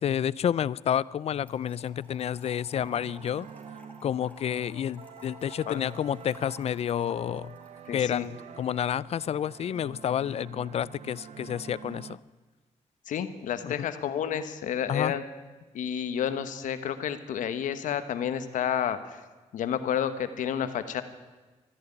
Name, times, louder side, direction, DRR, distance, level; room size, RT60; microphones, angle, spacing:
voice 1, 0.0-3.5 4.0-7.5 7.9-12.2 13.6-13.7 14.9-15.1, left 9 dB, 55° left, 21 dB, 0.4 m, -29 dB
Trickle dribble / Fill (with liquid), 1.5-8.6, left 1 dB, 10° left, 3.6 m, -55 dB
sound 1, 2.7-12.2, right 7 dB, 65° right, 0.8 m, -47 dB
voice 2, 7.9-8.3 13.1-15.2 15.7-19.2 19.5-21.0, left 9 dB, 85° left, 11 dB, 1.1 m, -30 dB
13.5 x 10.5 x 9.8 m, 1.3 s
cardioid pair, 95°, 13 cm